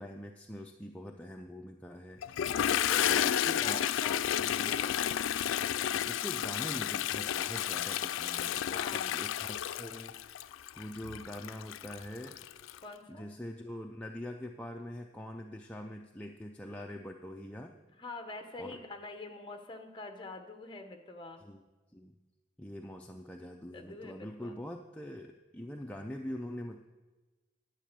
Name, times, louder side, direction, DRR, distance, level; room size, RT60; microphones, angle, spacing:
voice 1, 0.0-2.2 3.0-3.9 4.4-4.8 6.1-12.4 13.1-17.7 18.6-18.8 21.4-21.6 21.9-22.2 22.6-26.8, left 1 dB, 5° left, 1 dB, 0.4 m, -44 dB
Toilet flush, 2.2-12.8, left 10 dB, 85° left, 0.3 m, -32 dB
voice 2, 2.7-5.0 8.7-9.2 12.8-13.3 18.0-21.4 23.7-24.6, left 2 dB, 25° left, 5 dB, 1.0 m, -45 dB
10.0 x 8.9 x 6.7 m, 1.2 s
head